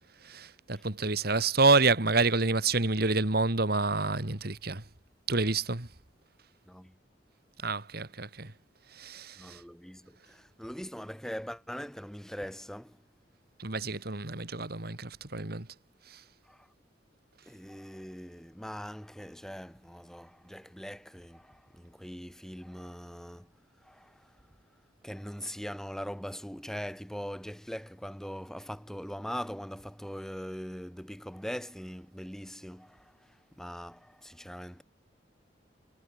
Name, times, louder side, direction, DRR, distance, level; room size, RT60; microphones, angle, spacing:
voice 1, 0.2-4.8 5.3-5.9 7.6-8.5 8.9-9.6 13.6-15.7 16.1-16.2, right 3 dB, 60° right, 2.5 m, -28 dB
voice 2, 6.7-7.0 9.4-13.1 16.4-16.7 17.4-24.5 25.0-34.8, equal, 5° left, 5.1 m, -41 dB
head